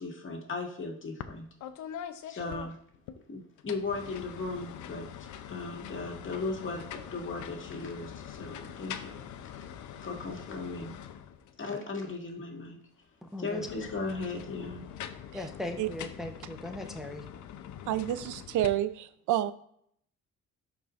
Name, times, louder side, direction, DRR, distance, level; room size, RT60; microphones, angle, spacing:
voice 1, 0.0-1.5 2.3-2.7 3.3-9.2 10.0-11.0 11.6-12.8 13.4-14.9, left 3 dB, 40° left, 0 dB, 1.9 m, -37 dB
sound 1, 1.2-1.4 1.6-3.2 3.6-11.6 13.4-18.7, left 9 dB, 75° left, 0.7 m, -43 dB
voice 2, 13.2-13.7 15.3-17.3, left 1 dB, ahead, 3 dB, 0.8 m, -39 dB
voice 3, 17.9-19.5, right 12 dB, 80° right, 14 dB, 0.5 m, -29 dB
12.0 x 4.6 x 2.5 m, 0.66 s
cardioid pair, 90°, 30 cm